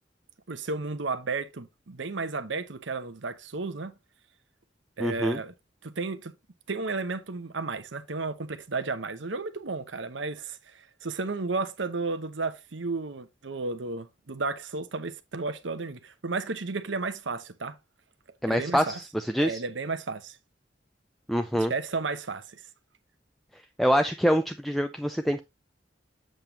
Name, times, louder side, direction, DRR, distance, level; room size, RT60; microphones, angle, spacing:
voice 1, 0.5-3.9 5.0-5.5 5.8-6.3 6.7-17.8 18.4-19.0 19.4-20.4 21.6-22.6, right 3 dB, 85° right, 0.9 m, -33 dB
voice 2, 5.0-5.4 18.4-19.6 21.3-21.7 23.8-25.4, equal, ahead, 0.4 m, -25 dB
7.7 x 7.0 x 2.8 m
head